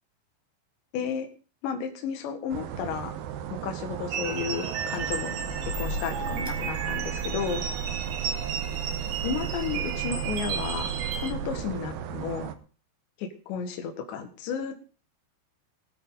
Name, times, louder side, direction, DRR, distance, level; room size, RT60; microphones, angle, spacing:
voice 1, 0.9-1.3 1.6-3.1 3.6-5.4 5.8-7.6 9.2-12.5 13.2-14.7, left 7 dB, 70° left, 5 dB, 3.9 m, -33 dB
sound 1, 2.5-12.5, right 10 dB, 75° right, 2.2 m, -37 dB
sound 2, 4.1-11.3, right 7 dB, 60° right, 2.5 m, -34 dB
sound 3, 4.9-12.3, right 5 dB, 10° right, 0.8 m, -36 dB
20.5 x 9.1 x 4.1 m, 0.37 s
omnidirectional pair, 5.4 m